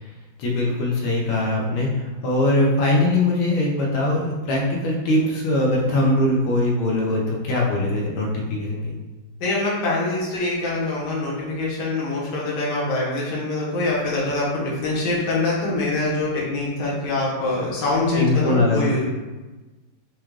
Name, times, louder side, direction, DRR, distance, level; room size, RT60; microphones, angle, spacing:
voice 1, 0.4-9.0 18.1-19.0, left 1 dB, 90° left, -3 dB, 1.6 m, -21 dB
voice 2, 9.4-19.0, left 2 dB, 60° left, -6 dB, 1.6 m, -24 dB
4.8 x 2.3 x 3.1 m, 1.2 s
omnidirectional pair, 2.2 m